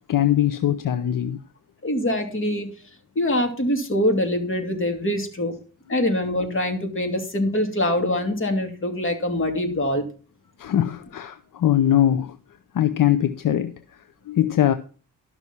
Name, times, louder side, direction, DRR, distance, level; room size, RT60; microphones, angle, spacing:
voice 1, 0.1-1.4 10.6-12.4 12.7-14.7, left 11 dB, 65° left, 0.8 m, -21 dB
voice 2, 1.8-2.7 3.1-5.5 5.9-10.0, left 1 dB, 35° left, 2.7 m, -24 dB
12.5 x 6.1 x 5.5 m
cardioid pair, 95°, 35 cm